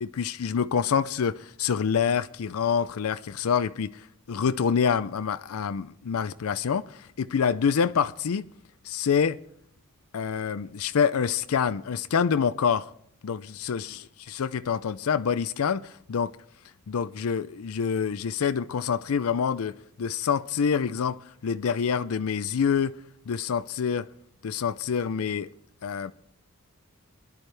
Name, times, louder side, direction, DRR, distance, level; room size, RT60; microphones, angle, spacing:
voice 1, 0.0-3.9 4.3-8.4 8.9-9.4 10.1-12.9 13.2-14.0 14.3-16.3 16.9-23.0 23.3-24.1 24.4-25.5 25.8-26.1, left 6 dB, 85° left, 0.5 m, -26 dB
24.0 x 10.5 x 3.3 m
head